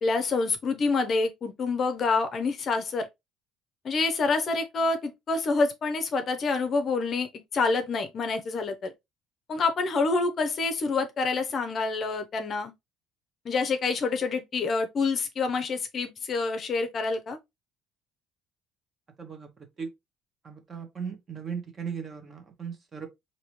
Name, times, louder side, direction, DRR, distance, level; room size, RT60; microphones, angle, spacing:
voice 1, 0.0-3.1 3.8-8.9 9.5-12.7 13.4-17.4, left 4 dB, 35° left, 0.6 m, -27 dB
voice 2, 19.2-19.9 20.4-23.1, right 6 dB, 25° right, 1.0 m, -37 dB
4.8 x 2.7 x 3.0 m
cardioid pair, 155°, 0 cm